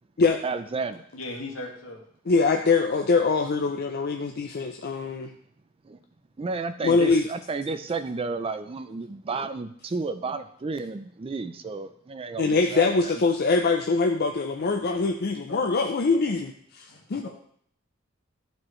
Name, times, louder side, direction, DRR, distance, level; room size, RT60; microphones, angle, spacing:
voice 1, 0.4-1.0 5.8-6.0 6.4-13.1, right 4 dB, 25° right, 10 dB, 0.4 m, -32 dB
voice 2, 1.1-2.0 14.6-14.8 15.5-15.7 16.1-16.3 16.9-17.3, left 2 dB, 75° left, 0 dB, 1.7 m, -39 dB
voice 3, 2.3-5.3 6.8-7.3 12.4-17.3, left 4 dB, 50° left, 3 dB, 0.5 m, -23 dB
11.0 x 4.5 x 3.2 m, 0.63 s
head